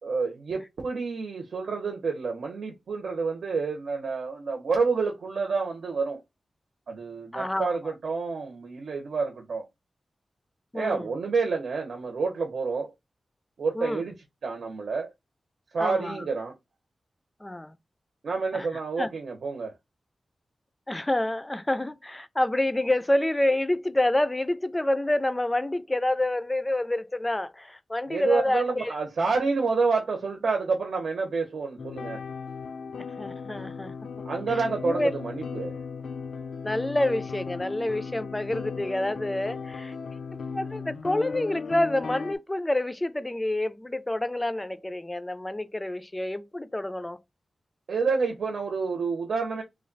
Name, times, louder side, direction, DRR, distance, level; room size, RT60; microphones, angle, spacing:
voice 1, 0.0-6.2 6.9-9.7 10.7-12.9 13.6-14.1 14.4-15.1 15.7-16.5 18.2-19.7 28.1-32.2 34.2-35.8 47.9-49.6, right 4 dB, 85° right, 0.9 m, -28 dB
voice 2, 7.3-7.7 10.7-11.1 13.8-14.1 15.8-16.3 17.4-17.8 18.5-18.7 19.0-19.1 20.9-28.9 33.0-33.9 34.8-35.1 36.6-39.9 40.5-47.2, left 1 dB, 15° left, 0.4 m, -28 dB
sound 1, 31.8-42.4, left 5 dB, 85° left, 0.4 m, -36 dB
3.2 x 2.3 x 3.9 m
wide cardioid pair, 150°, 0 cm